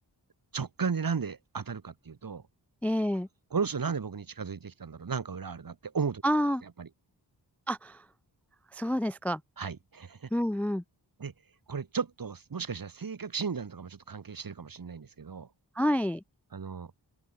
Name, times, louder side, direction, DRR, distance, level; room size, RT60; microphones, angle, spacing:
voice 1, 0.5-2.4 3.5-6.2 6.8-6.9 9.6-10.3 11.2-11.3 11.7-15.5 16.5-16.9, right 5 dB, 50° right, 1.5 m, -34 dB
voice 2, 2.8-3.3 6.2-6.6 7.7-8.1 8.7-9.4 10.3-10.8 15.8-16.2, equal, 5° left, 0.3 m, -28 dB
open air
wide cardioid pair, 105°, 43 cm